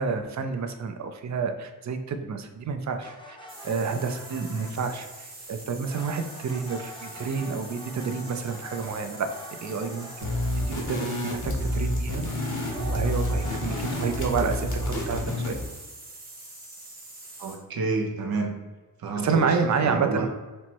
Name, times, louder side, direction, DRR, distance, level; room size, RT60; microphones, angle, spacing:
voice 1, 0.0-3.4 3.6-4.3 4.6-9.3 9.6-10.3 10.7-15.6 19.2-20.3, right 5 dB, 55° right, 7 dB, 0.5 m, -29 dB
sound 1, 3.0-5.2 5.8-12.0 12.5-15.2, left 1 dB, 15° left, 0.6 m, -46 dB
sound 2, 3.5-17.6, right 2 dB, 25° right, 0.9 m, -45 dB
voice 2, 4.3-4.7 17.4-18.5 19.0-19.6 19.8-20.3, right 4 dB, 85° right, 1 dB, 0.7 m, -29 dB
sound 3, 10.2-15.7, left 1 dB, 60° left, 0.9 m, -29 dB
4.3 x 2.1 x 4.4 m, 1.2 s
wide cardioid pair, 150°, 35 cm